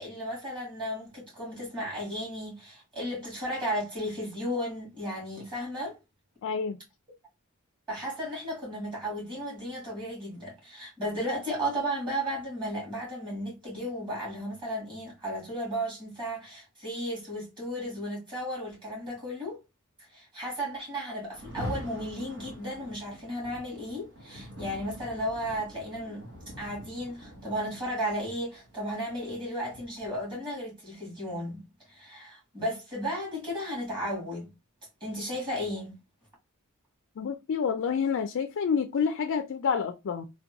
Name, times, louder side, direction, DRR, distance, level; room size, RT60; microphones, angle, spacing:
voice 1, 0.0-6.0 7.9-19.6 20.0-26.2 26.6-31.6 31.9-34.5 35.0-36.0, equal, 20° right, 2.0 m, -34 dB
voice 2, 6.4-6.8 37.2-40.2, left 6 dB, 60° left, 0.4 m, -28 dB
Rain, 21.3-30.3, equal, 60° right, 1.2 m, -44 dB
3.4 x 2.2 x 2.8 m
head